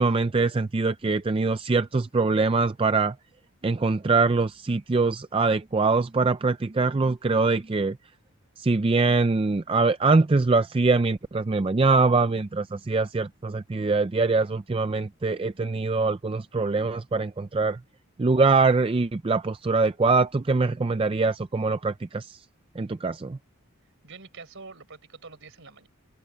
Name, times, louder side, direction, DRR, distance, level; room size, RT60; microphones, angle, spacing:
voice 1, 0.0-3.1 3.6-8.0 8.6-17.8 18.2-22.4 22.8-23.4, right 3 dB, 25° right, 0.4 m, -23 dB
voice 2, 24.0-25.9, right 4 dB, 55° right, 4.2 m, -45 dB
open air
head